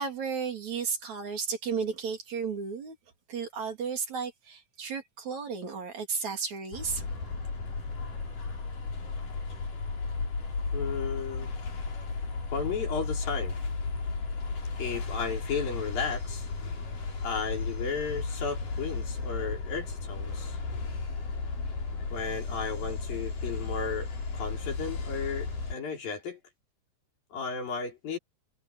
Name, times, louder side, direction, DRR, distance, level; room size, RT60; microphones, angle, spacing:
voice 1, 0.0-3.0 3.3-7.3, right 5 dB, 55° right, 4.5 m, -34 dB
sound 1, 6.7-25.7, left 4 dB, 65° left, 6.9 m, -34 dB
voice 2, 10.7-11.5 12.5-13.6 14.8-16.5 17.2-20.6 22.1-26.4 27.3-28.2, left 5 dB, 85° left, 6.4 m, -34 dB
omnidirectional pair, 4.0 m